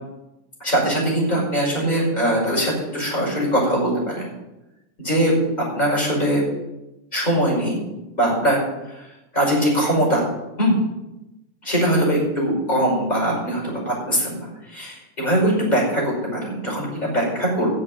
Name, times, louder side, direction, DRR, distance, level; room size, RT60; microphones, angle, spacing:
voice 1, 0.6-4.3 5.0-5.4 5.7-6.4 7.1-7.8 8.1-8.6 8.9-9.1 9.3-10.3 10.6-10.8 11.6-17.7, equal, 30° left, -4 dB, 5.5 m, -21 dB
15.0 x 5.2 x 9.5 m, 0.96 s
omnidirectional pair, 1.4 m